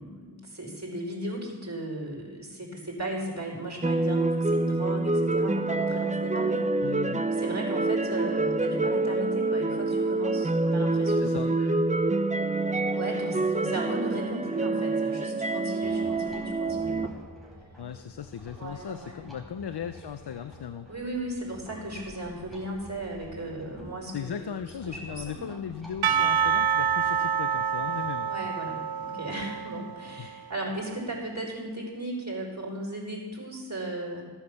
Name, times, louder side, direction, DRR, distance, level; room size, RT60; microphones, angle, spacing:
voice 1, 0.0-6.6 7.4-11.8 12.9-17.2 18.6-19.2 20.9-25.6 28.2-34.3, right 1 dB, 40° right, -2 dB, 4.6 m, -36 dB
sound 1, 3.8-17.1, right 2 dB, 20° right, 0.6 m, -27 dB
voice 2, 6.8-7.3 11.2-11.5 17.8-20.9 24.1-28.3 30.2-30.4, left 8 dB, 75° left, 10 dB, 0.6 m, -37 dB
sound 2, 15.8-28.1, equal, ahead, 4.1 m, -49 dB
Percussion / Church bell, 26.0-30.4, right 7 dB, 65° right, 0.5 m, -27 dB
15.5 x 8.1 x 6.9 m, 1.5 s
wide cardioid pair, 45°, 41 cm